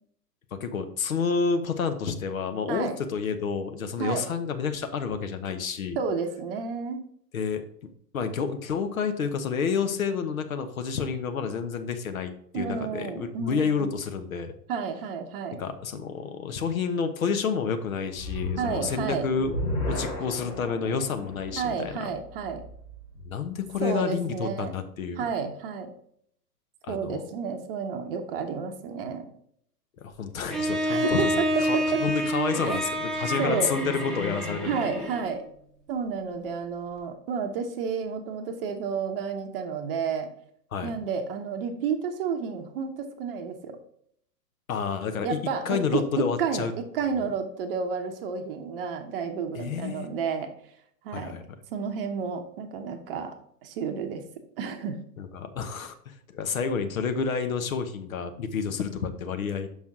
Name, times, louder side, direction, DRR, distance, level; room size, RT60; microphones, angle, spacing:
voice 1, 0.6-6.0 7.3-7.6 8.1-14.5 15.6-19.5 19.9-22.1 23.2-25.3 26.8-27.2 30.0-35.1 40.7-40.9 44.7-45.4 45.6-46.7 49.5-50.1 51.1-51.4 55.2-59.7, left 6 dB, 55° left, 8 dB, 0.9 m, -29 dB
voice 2, 6.0-7.0 12.5-13.9 14.7-15.6 18.6-19.3 21.6-22.6 23.8-24.7 25.2-25.9 26.9-29.3 30.9-32.0 32.6-32.8 33.4-33.7 34.7-35.4 35.9-40.3 40.8-43.8 45.2-50.5 51.0-51.4 51.7-53.3 53.6-54.2 54.6-55.0, right 6 dB, 35° right, 6 dB, 0.8 m, -31 dB
sound 1, 18.1-23.4, left 1 dB, 80° left, 2.6 m, -34 dB
Bowed string instrument, 30.5-35.4, equal, ahead, 1.0 m, -28 dB
6.4 x 5.3 x 3.7 m, 0.67 s
figure-of-eight pair, 110°, 49 cm